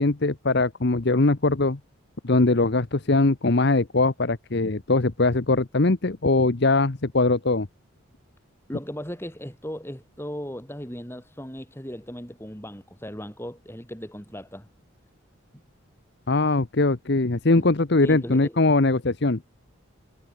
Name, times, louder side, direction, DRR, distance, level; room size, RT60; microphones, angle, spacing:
voice 1, 0.0-1.8 2.2-7.7 16.3-19.4, left 2 dB, 50° left, 1.0 m, -21 dB
voice 2, 8.7-14.7 17.6-17.7 18.0-18.6, equal, 10° left, 5.4 m, -37 dB
head